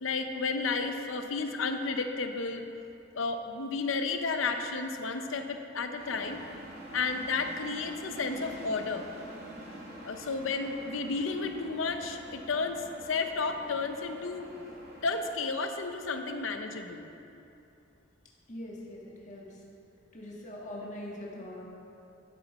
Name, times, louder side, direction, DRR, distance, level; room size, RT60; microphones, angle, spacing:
voice 1, 0.0-2.6 3.1-6.4 6.9-9.1 10.0-14.5 15.0-17.1, left 4 dB, 90° left, 6 dB, 0.7 m, -32 dB
sound 1, 6.0-15.3, right 1 dB, 55° right, 2.2 m, -46 dB
voice 2, 18.5-19.6 20.1-21.6, left 1 dB, 40° left, -4 dB, 1.6 m, -42 dB
12.5 x 6.8 x 4.1 m, 2.8 s
head